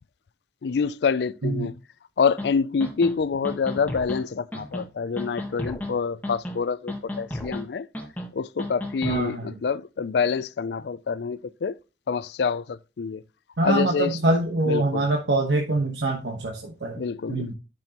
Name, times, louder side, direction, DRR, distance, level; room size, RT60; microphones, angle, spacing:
voice 1, 0.6-1.7 2.2-7.9 8.3-11.7 12.1-13.2 13.6-14.2 14.7-15.1 17.0-17.5, left 5 dB, 70° left, 0.4 m, -26 dB
sound 1, 2.4-2.5 2.8-3.1 3.4-4.2 4.5-4.8 5.2-5.9 6.2-6.6 6.9-7.6 7.9-8.3 8.6-9.2, left 1 dB, 10° left, 1.2 m, -33 dB
voice 2, 9.0-9.6 13.6-17.0 17.3-17.5, right 2 dB, 85° right, 1.2 m, -24 dB
10.5 x 6.2 x 2.9 m
head